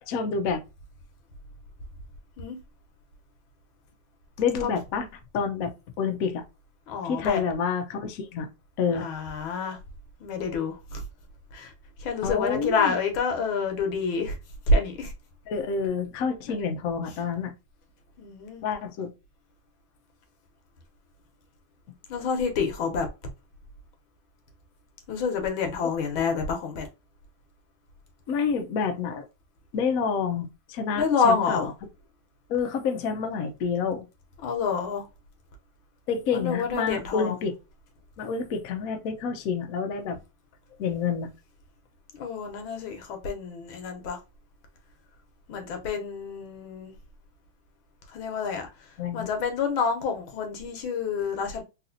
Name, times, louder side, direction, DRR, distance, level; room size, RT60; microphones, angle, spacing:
voice 1, 0.0-0.6 4.4-5.1 5.3-5.7 6.0-6.4 7.0-8.5 8.8-9.1 12.2-12.9 15.5-17.5 18.6-19.1 28.3-29.3 29.7-31.7 32.5-34.1 36.1-37.5 38.2-40.2 40.8-41.3 49.0-49.3, left 6 dB, 65° left, 0.8 m, -28 dB
voice 2, 6.9-7.4 8.9-9.8 10.2-11.0 11.5-11.7 12.0-14.4 14.7-15.1 18.2-18.6 22.1-23.1 25.1-26.9 31.0-31.7 34.4-35.0 36.3-37.4 42.1-44.2 45.5-46.9 48.1-51.6, left 4 dB, 85° left, 1.7 m, -28 dB
4.0 x 2.5 x 2.6 m
omnidirectional pair, 2.2 m